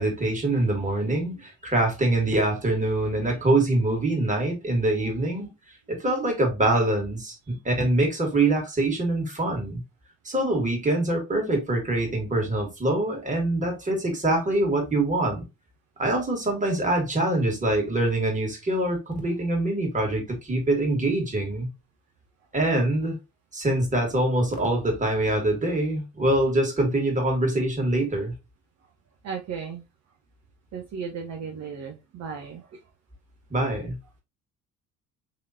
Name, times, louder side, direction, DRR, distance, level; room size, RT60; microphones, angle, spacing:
voice 1, 0.0-5.5 5.9-9.8 10.2-15.4 16.0-21.7 22.5-23.2 23.5-28.3 33.5-34.0, right 2 dB, 15° right, 1.7 m, -24 dB
voice 2, 29.2-29.8 30.7-32.8, right 6 dB, 40° right, 0.7 m, -36 dB
3.7 x 3.0 x 2.7 m
figure-of-eight pair, 50°, 43 cm